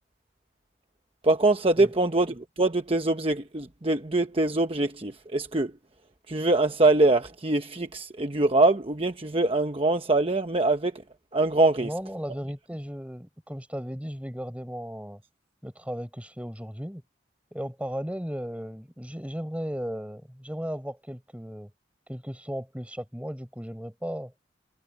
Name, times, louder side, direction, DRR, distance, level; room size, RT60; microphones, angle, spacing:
voice 1, 1.2-5.7 6.3-10.9 11.3-11.9, right 2 dB, 30° right, 1.0 m, -23 dB
voice 2, 11.8-15.2 15.6-17.0 17.5-21.7 22.1-24.3, equal, 10° right, 5.9 m, -36 dB
head